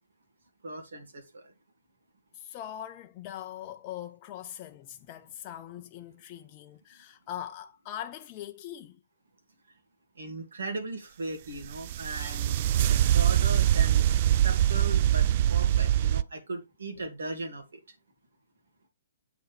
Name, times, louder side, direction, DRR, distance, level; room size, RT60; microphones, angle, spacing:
voice 1, 0.6-1.4 10.2-14.2 14.4-17.6, right 2 dB, 65° right, 2.5 m, -38 dB
voice 2, 2.3-9.0, left 11 dB, 30° left, 0.5 m, -41 dB
sound 1, 11.6-16.2, right 11 dB, 40° right, 0.3 m, -23 dB
8.3 x 5.4 x 3.4 m
figure-of-eight pair, 125°, 0 cm